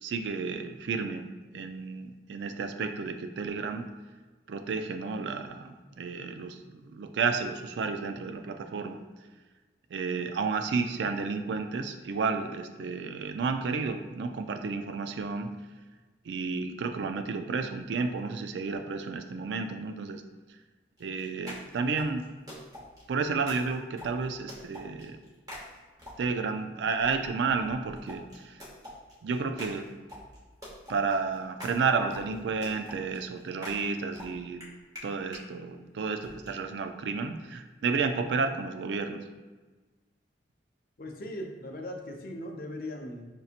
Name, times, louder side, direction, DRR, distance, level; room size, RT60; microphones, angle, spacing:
voice 1, 0.0-1.2 1.5-3.9 4.5-9.0 9.9-15.5 16.3-20.2 21.0-22.3 23.1-25.2 26.2-28.6 29.2-29.9 30.9-34.6 35.0-39.2, right 4 dB, 75° right, 7 dB, 0.3 m, -31 dB
sound 1, 21.0-26.4 27.0-35.4 36.2-36.5, left 1 dB, 20° right, 1.0 m, -46 dB
voice 2, 41.0-43.3, left 1 dB, 50° left, 2 dB, 0.5 m, -39 dB
5.2 x 2.8 x 2.4 m, 1.3 s
head